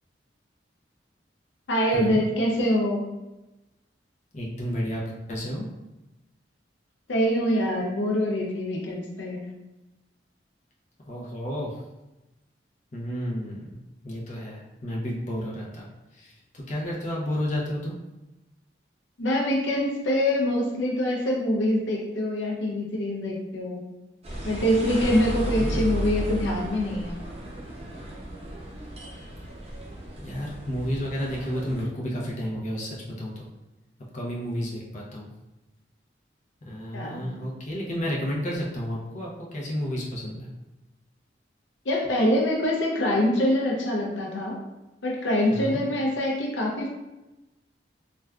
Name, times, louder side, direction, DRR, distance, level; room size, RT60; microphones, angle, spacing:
voice 1, 1.7-3.1 7.1-9.4 19.2-23.8 24.4-27.2 36.9-37.3 41.8-44.6 45.0-46.9, left 1 dB, 90° left, -1 dB, 0.6 m, -25 dB
voice 2, 4.3-5.0 5.3-5.7 11.0-11.7 12.9-15.9 16.1-17.9 25.6-25.9 30.2-33.5 34.1-35.3 36.6-40.5 45.5-45.8, equal, 40° left, -4 dB, 0.6 m, -31 dB
sound 1, 24.2-31.8, equal, 35° right, 0.6 m, -34 dB
3.4 x 2.4 x 2.3 m, 1.0 s
head